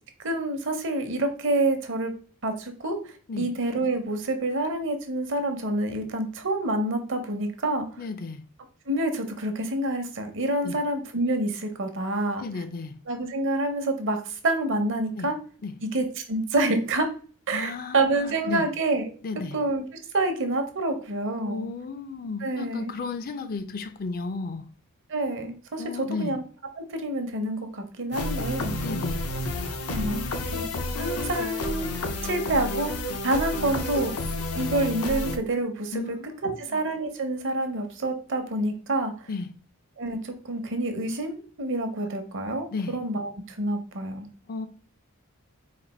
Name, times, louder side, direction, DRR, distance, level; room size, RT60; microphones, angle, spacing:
voice 1, 0.2-2.1 2.4-3.0 3.4-7.9 8.9-12.5 13.1-15.4 15.8-17.1 17.5-19.1 19.5-19.8 20.1-21.7 22.4-22.9 25.1-26.4 26.8-28.8 29.9-30.2 30.5-30.6 31.0-31.9 32.2-32.9 33.2-34.2 34.5-36.2 36.4-39.3 40.0-44.3, right 2 dB, 60° right, 0.9 m, -27 dB
voice 2, 8.0-8.4 10.6-10.8 12.4-12.9 15.2-15.3 15.6-15.7 17.5-18.7 19.2-19.6 21.5-24.6 25.8-26.4 28.8-29.2 30.1-30.8 35.9-36.8 39.3-39.5 42.7-43.0 44.5-44.7, left 4 dB, 40° left, 0.4 m, -34 dB
sound 1, 28.1-35.4, left 1 dB, 85° left, 0.7 m, -30 dB
4.1 x 2.5 x 4.2 m
head